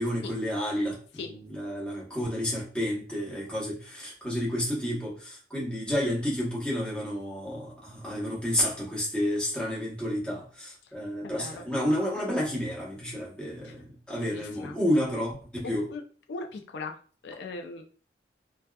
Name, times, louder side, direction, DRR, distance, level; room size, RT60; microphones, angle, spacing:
voice 1, 0.0-15.9, equal, 5° left, 0.8 m, -30 dB
voice 2, 14.1-14.7 15.6-16.0 16.3-16.9 17.2-17.8, left 3 dB, 80° left, 0.4 m, -39 dB
2.7 x 2.2 x 2.2 m
head